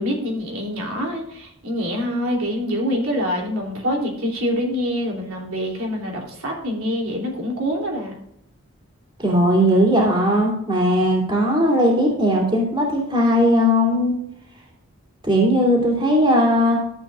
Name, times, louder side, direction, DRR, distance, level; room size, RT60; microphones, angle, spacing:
voice 1, 0.0-8.1, equal, 75° right, -2 dB, 3.1 m, -25 dB
voice 2, 9.2-14.1 15.2-16.8, equal, 20° right, -1 dB, 2.8 m, -18 dB
14.0 x 8.2 x 2.4 m, 0.76 s
head